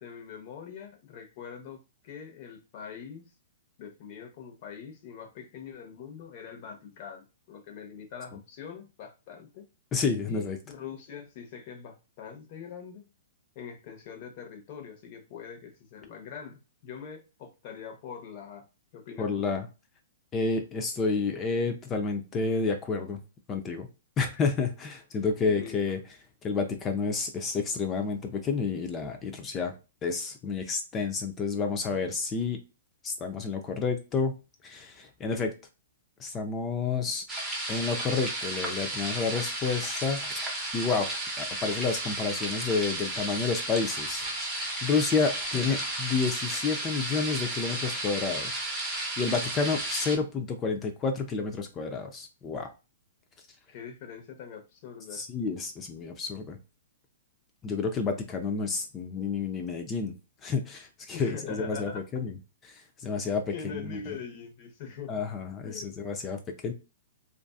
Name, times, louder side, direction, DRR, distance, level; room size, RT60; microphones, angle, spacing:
voice 1, 0.0-3.2 3.8-9.6 10.2-13.0 13.5-18.7 18.9-19.3 25.5-25.8 45.5-45.8 53.7-55.2 61.1-62.0 63.5-65.1 65.6-66.0, left 7 dB, 45° left, 0.7 m, -43 dB
voice 2, 9.9-10.6 19.2-19.7 20.3-23.2 23.5-23.9 24.2-26.0 26.4-29.7 30.0-32.6 33.0-34.3 34.6-35.5 36.2-37.2 37.7-40.3 40.7-44.3 44.8-48.7 49.2-52.7 55.1-56.6 57.6-60.1 60.4-62.4 62.6-63.4 63.7-64.2 65.1-66.7, left 4 dB, 20° left, 0.4 m, -30 dB
sound 1, 37.3-50.2, right 1 dB, 5° right, 0.7 m, -33 dB
2.5 x 2.3 x 2.3 m
hypercardioid pair, 140°, 0 cm